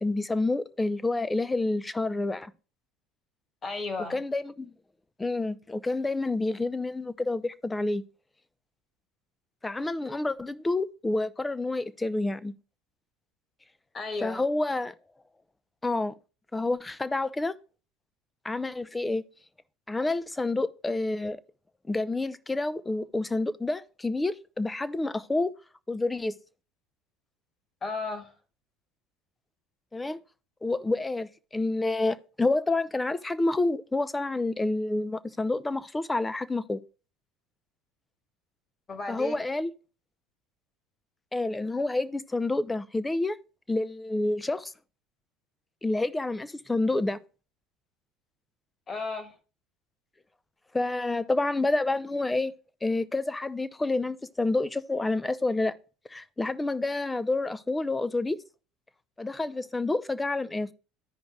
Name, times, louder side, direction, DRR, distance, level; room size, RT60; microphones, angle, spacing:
voice 1, 0.0-2.5 4.1-4.7 5.2-8.0 9.6-12.5 14.2-14.9 15.8-16.1 16.5-17.5 18.4-19.2 19.9-21.4 21.9-25.5 25.9-26.3 29.9-30.2 30.6-36.8 39.1-39.7 41.3-43.4 43.7-44.7 45.8-47.2 50.7-52.5 52.8-55.7 56.1-58.4 59.2-60.7, left 2 dB, 15° left, 0.5 m, -28 dB
voice 2, 3.6-4.2 13.9-14.4 27.8-28.3 38.9-39.3 48.9-49.3, left 3 dB, 35° left, 1.6 m, -34 dB
14.0 x 5.1 x 2.3 m
hypercardioid pair, 75°, 0 cm